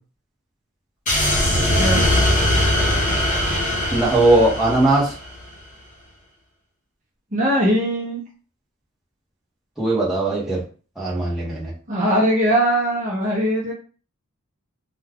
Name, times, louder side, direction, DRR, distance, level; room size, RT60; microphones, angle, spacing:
sound 1, 1.1-5.4, left 1 dB, 35° left, 1.0 m, -20 dB
voice 1, 1.8-2.1 7.3-8.2 11.9-13.7, equal, 35° right, -3 dB, 0.7 m, -20 dB
voice 2, 3.9-5.1 9.8-10.6 11.0-11.7, right 2 dB, ahead, -7 dB, 0.9 m, -19 dB
2.3 x 2.3 x 3.4 m, 0.38 s
head